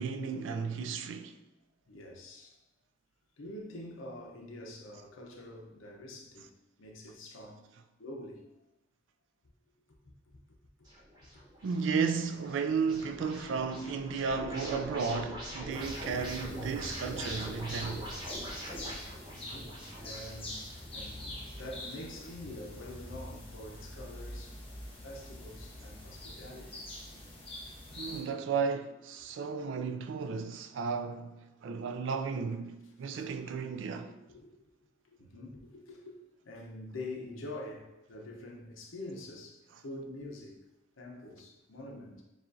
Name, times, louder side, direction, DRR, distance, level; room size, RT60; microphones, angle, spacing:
voice 1, 0.0-1.4 11.6-18.1 28.0-34.1, right 5 dB, 65° right, 0.3 m, -34 dB
voice 2, 1.9-2.6 3.4-6.5 6.8-7.6 8.0-8.4 11.3-11.4 19.3-24.6 25.0-26.9 29.2-29.4 33.1-33.2 34.3-34.8 35.0-36.2 36.4-40.7 41.0-42.2, left 1 dB, 85° left, 0.8 m, -46 dB
sound 1, 10.9-22.3, equal, 20° right, 1.0 m, -44 dB
sound 2, 15.7-28.2, left 1 dB, 25° left, 1.0 m, -44 dB
7.1 x 2.4 x 2.6 m
head